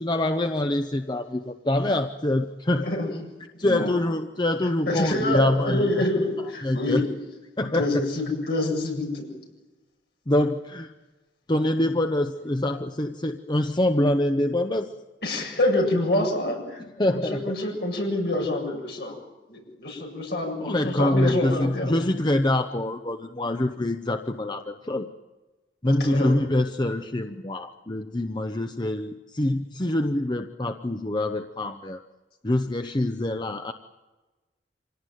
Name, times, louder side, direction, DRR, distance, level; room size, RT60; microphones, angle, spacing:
voice 1, 0.0-2.9 3.6-5.8 6.6-7.0 7.6-8.0 10.3-10.9 11.5-14.9 17.0-17.5 20.6-25.1 25.8-32.0 32.4-33.7, left 1 dB, 25° left, 7 dB, 0.8 m, -25 dB
voice 2, 2.7-3.1 3.6-3.9 4.9-7.1 7.7-9.2 15.2-16.8 17.1-19.2 19.5-22.1 25.8-26.3, left 1 dB, 60° left, 1 dB, 7.7 m, -26 dB
26.5 x 18.0 x 9.3 m, 1.2 s
head